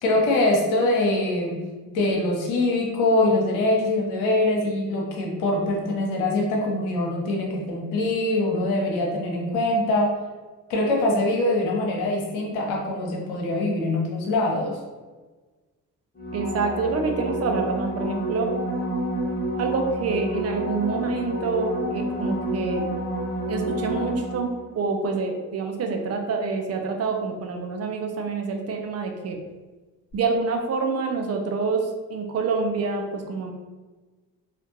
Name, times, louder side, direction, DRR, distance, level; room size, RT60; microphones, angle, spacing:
voice 1, 0.0-10.1 10.7-14.8, left 2 dB, 65° left, -1 dB, 0.9 m, -23 dB
sound 1, 16.2-24.8 30.1-30.2, right 1 dB, 20° left, 1.1 m, -29 dB
voice 2, 16.3-18.5 19.6-22.9 23.5-29.4 30.1-33.5, right 4 dB, 35° right, 4 dB, 0.6 m, -27 dB
4.3 x 2.4 x 2.7 m, 1.3 s
figure-of-eight pair, 40°, 47 cm